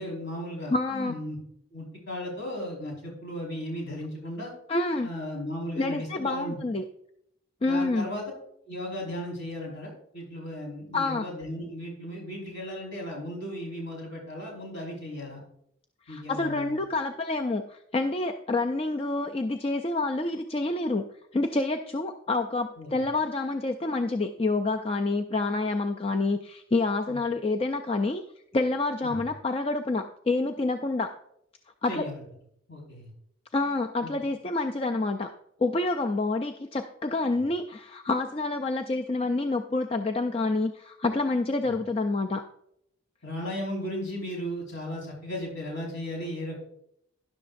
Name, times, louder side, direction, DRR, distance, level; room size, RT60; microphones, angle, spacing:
voice 1, 0.0-1.4 1.7-4.5 5.0-6.6 7.6-8.3 8.7-15.4 16.1-16.8 22.8-23.0 27.1-27.2 29.0-29.2 31.8-32.2 32.7-33.1 34.0-34.1 41.6-41.7 43.2-46.6, left 1 dB, 60° left, -2 dB, 4.9 m, -36 dB
voice 2, 0.7-1.1 4.7-5.1 5.8-6.8 7.6-8.1 10.9-11.2 16.1-21.0 21.3-28.2 28.5-31.1 31.8-32.1 33.5-35.3 35.6-42.4, left 2 dB, 25° left, 5 dB, 0.4 m, -28 dB
12.5 x 11.0 x 2.6 m, 0.74 s
head